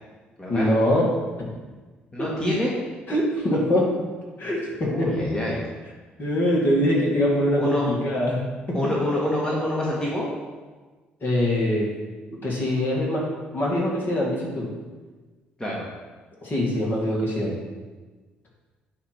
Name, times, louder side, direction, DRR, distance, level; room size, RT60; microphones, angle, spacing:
voice 1, 0.5-1.1 1.4-1.5 2.2-2.6 3.1-3.9 4.4-5.3 6.2-8.4 8.7-8.9 11.2-11.9 12.4-13.3 13.5-14.7 16.4-17.6, left 1 dB, 40° left, -3 dB, 2.3 m, -23 dB
voice 2, 2.1-2.7 4.8-5.6 7.5-7.9 8.7-10.3 15.6-15.8, left 1 dB, 15° left, -5 dB, 1.7 m, -26 dB
9.1 x 3.1 x 6.0 m, 1.3 s
figure-of-eight pair, 45°, 5 cm